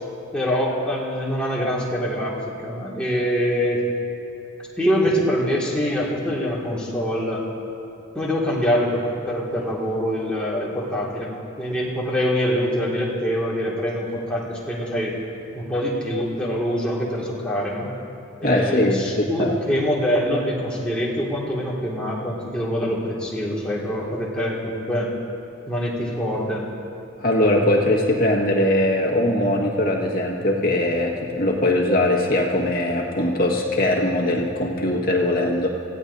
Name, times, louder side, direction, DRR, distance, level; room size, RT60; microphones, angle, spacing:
voice 1, 0.3-3.8 4.8-7.4 8.1-15.2 15.5-17.9 18.4-25.1 25.7-26.7, equal, 5° left, -6 dB, 2.1 m, -24 dB
voice 2, 18.4-19.6 27.2-35.7, left 1 dB, 45° left, -2 dB, 1.7 m, -21 dB
25.5 x 16.0 x 2.7 m, 2.7 s
head